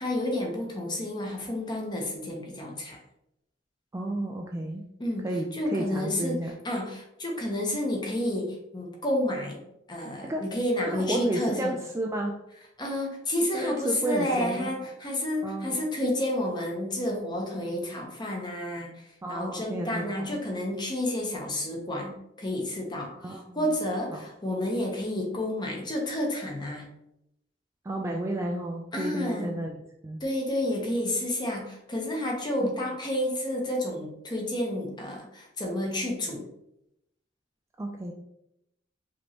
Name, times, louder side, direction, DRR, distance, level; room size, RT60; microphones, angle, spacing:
voice 1, 0.0-3.0 5.0-5.2 5.5-9.6 9.9-11.7 12.8-26.8 28.9-29.6 30.2-36.4, left 1 dB, 25° left, 0 dB, 0.9 m, -30 dB
voice 2, 3.9-4.8 5.2-5.5 5.7-6.5 10.2-10.4 10.9-12.3 13.5-14.7 15.4-15.8 19.2-20.3 23.2-23.7 24.1-24.2 27.8-29.8 30.0-30.2 32.6-32.8 37.8-38.1, right 1 dB, 15° right, 1 dB, 0.3 m, -32 dB
5.0 x 3.0 x 2.9 m, 0.83 s
head